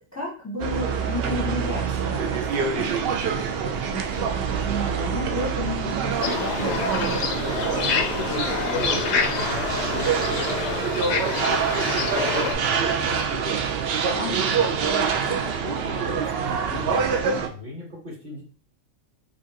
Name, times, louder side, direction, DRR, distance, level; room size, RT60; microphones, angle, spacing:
voice 1, 0.1-2.9 3.9-7.5 14.1-14.6, left 1 dB, 15° left, -3 dB, 0.7 m, -32 dB
sound 1, 0.6-17.5, right 6 dB, 60° right, 0.7 m, -26 dB
sound 2, 6.2-12.5, left 6 dB, 65° left, 0.8 m, -27 dB
voice 2, 7.8-13.6 14.6-18.4, left 2 dB, 40° right, -4 dB, 1.6 m, -37 dB
5.1 x 2.5 x 2.8 m, 0.41 s
omnidirectional pair, 1.3 m